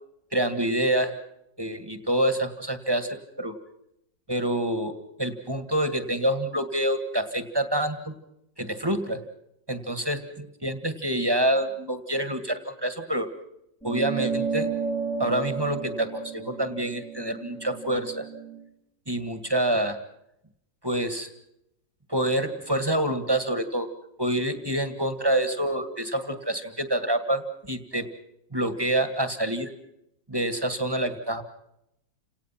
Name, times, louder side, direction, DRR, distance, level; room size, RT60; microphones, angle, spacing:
voice 1, 0.3-1.1 1.6-3.5 4.3-8.2 8.6-9.3 9.7-10.2 10.6-13.3 13.8-14.7 15.2-18.3 19.1-20.0 20.8-21.3 22.1-23.9 24.2-28.1 28.5-29.7 30.3-31.4, right 1 dB, 15° right, 9 dB, 1.6 m, -27 dB
sound 1, 13.8-18.6, right 5 dB, ahead, 1.5 m, -32 dB
30.0 x 18.5 x 5.9 m, 0.82 s
omnidirectional pair, 2.0 m